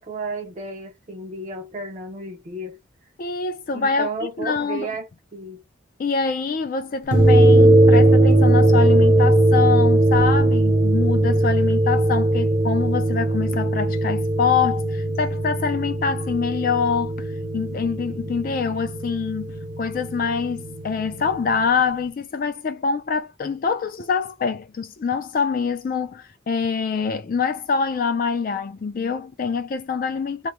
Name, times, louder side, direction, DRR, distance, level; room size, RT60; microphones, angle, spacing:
voice 1, 0.0-2.8 3.7-5.6, right 3 dB, 35° right, 0.4 m, -33 dB
voice 2, 3.2-4.1 4.4-4.9 6.0-17.3 17.5-30.5, left 5 dB, 45° left, 0.3 m, -25 dB
sound 1, 7.1-21.7, right 1 dB, 70° right, 0.9 m, -19 dB
2.3 x 2.0 x 2.9 m
head